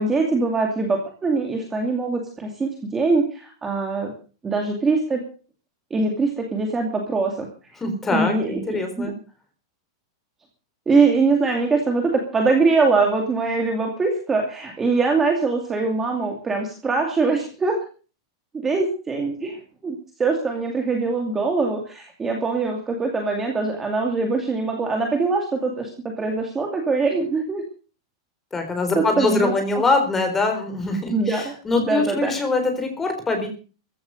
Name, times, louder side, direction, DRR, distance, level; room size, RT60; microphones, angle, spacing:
voice 1, 0.0-4.1 4.4-5.2 5.9-7.5 8.1-9.1 10.9-17.8 18.6-19.6 19.8-27.6 28.9-29.8 31.1-31.5 31.8-32.3, right 3 dB, 10° right, 2 dB, 2.5 m, -23 dB
voice 2, 7.8-9.1 28.5-33.5, left 3 dB, 10° left, 5 dB, 4.1 m, -23 dB
15.0 x 12.5 x 6.5 m, 0.37 s
supercardioid pair, 180°, 2 cm